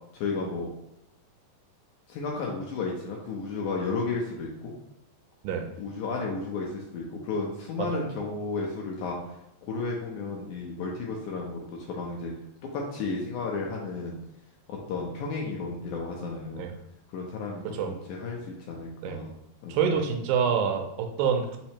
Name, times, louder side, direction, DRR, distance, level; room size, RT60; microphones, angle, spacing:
voice 1, 0.1-0.7 2.1-4.7 5.8-9.2 9.7-12.3 12.7-14.2 14.7-16.6 17.1-19.3 19.6-20.0, left 3 dB, 75° left, -2 dB, 1.9 m, -33 dB
voice 2, 19.7-21.6, right 7 dB, 85° right, 5 dB, 2.3 m, -27 dB
5.5 x 2.0 x 4.3 m, 0.84 s
omnidirectional pair, 3.9 m